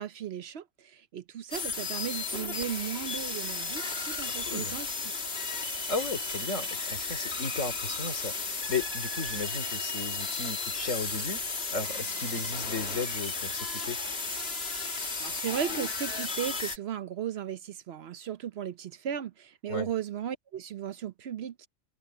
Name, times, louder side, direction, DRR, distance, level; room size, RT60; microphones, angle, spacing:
voice 1, 0.0-4.9 15.2-21.7, right 9 dB, 60° right, 0.9 m, -36 dB
sound 1, 1.5-16.8, left 4 dB, 55° left, 2.1 m, -34 dB
voice 2, 5.9-14.0 19.7-19.9, left 3 dB, 85° left, 3.7 m, -35 dB
omnidirectional pair, 1.3 m